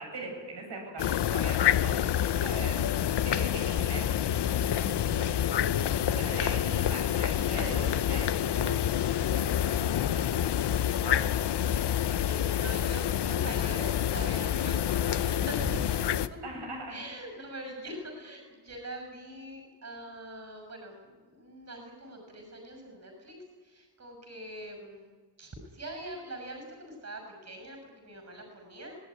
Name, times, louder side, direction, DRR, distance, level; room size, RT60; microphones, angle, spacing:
voice 1, 0.0-5.7 6.0-10.3 10.9-11.3 16.4-17.0, right 2 dB, 90° right, 0 dB, 7.4 m, -41 dB
sound 1, 1.0-16.3, left 10 dB, 85° left, 0.8 m, -27 dB
voice 2, 3.6-4.1 11.8-16.4 16.9-23.4 23.6-25.1 25.4-29.0, right 1 dB, 40° right, 3 dB, 6.5 m, -43 dB
24.5 x 19.0 x 9.9 m, 1.4 s
wide cardioid pair, 140°, 40 cm